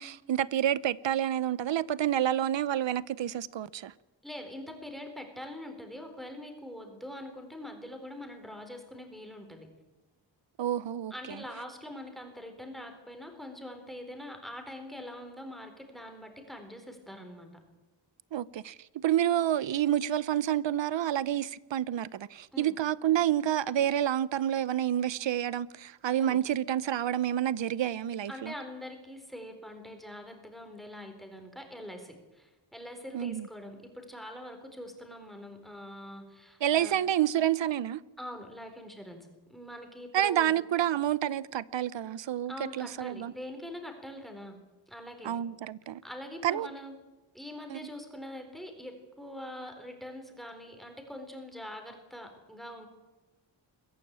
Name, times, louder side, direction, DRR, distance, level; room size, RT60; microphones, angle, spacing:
voice 1, 0.0-3.9 10.6-11.1 18.3-28.5 33.1-33.5 36.6-38.0 40.1-43.3 45.2-46.0 46.4-46.7 47.7-47.8, right 11 dB, 70° right, 0.8 m, -29 dB
voice 2, 4.2-9.7 11.1-17.5 22.5-22.7 26.2-26.4 28.3-36.9 38.2-40.5 42.5-44.6 44.9-45.3 46.0-46.9 47.3-52.9, left 1 dB, ahead, 4.0 m, -44 dB
23.0 x 15.0 x 8.8 m
wide cardioid pair, 155°, 46 cm